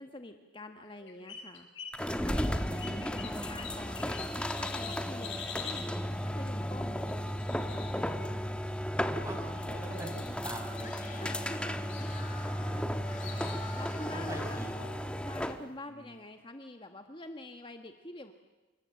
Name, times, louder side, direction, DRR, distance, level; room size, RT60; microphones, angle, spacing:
voice 1, 0.0-1.7 2.1-4.2 4.6-5.9 6.2-7.0 11.2-12.1 12.7-14.7 15.2-18.3, left 1 dB, 25° left, 6 dB, 1.3 m, -46 dB
sound 1, 0.8-2.0 2.3-5.9 7.0-8.5 9.4-9.6 9.9-10.5 10.8-11.5 11.9-12.3 13.2-13.7, left 7 dB, 80° left, 6.1 m, -45 dB
sound 2, 1.9-15.7, equal, 5° left, 1.2 m, -34 dB
voice 2, 9.1-11.0 13.2-13.8 14.1-15.0 15.9-16.1, right 1 dB, 15° right, 3 dB, 5.7 m, -44 dB
Screaming, 10.8-14.7, left 5 dB, 45° left, 3.6 m, -49 dB
28.0 x 24.5 x 7.7 m, 1.2 s
head